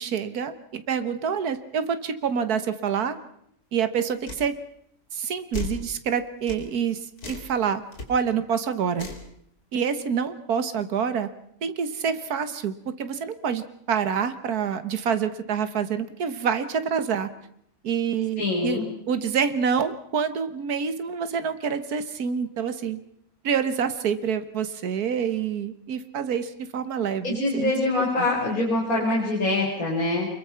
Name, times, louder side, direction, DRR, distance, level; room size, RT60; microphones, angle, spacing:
voice 1, 0.0-3.2 3.7-4.6 5.1-7.8 8.1-9.1 9.7-11.3 11.6-17.3 17.8-18.8 19.1-23.0 23.4-27.7 28.2-28.3, right 7 dB, 85° right, 11 dB, 1.8 m, -27 dB
sound 1, 4.3-4.4 5.5-5.8 6.5-6.6 7.2-7.5 7.9-8.1 9.0-9.3, left 4 dB, 85° left, 3.6 m, -34 dB
voice 2, 18.4-18.9 27.2-30.3, left 2 dB, 70° left, -5 dB, 5.1 m, -24 dB
25.5 x 22.0 x 5.8 m, 0.70 s
omnidirectional pair, 1.6 m